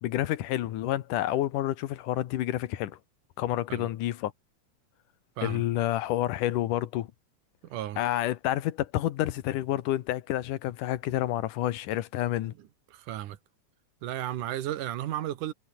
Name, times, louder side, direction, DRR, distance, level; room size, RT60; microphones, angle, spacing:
voice 1, 0.0-3.0 3.4-4.3 5.4-7.1 8.0-12.5, left 14 dB, 85° left, 2.7 m, -29 dB
voice 2, 7.6-8.0 12.9-13.4 14.0-15.5, right 12 dB, 85° right, 2.9 m, -34 dB
omnidirectional pair, 3.6 m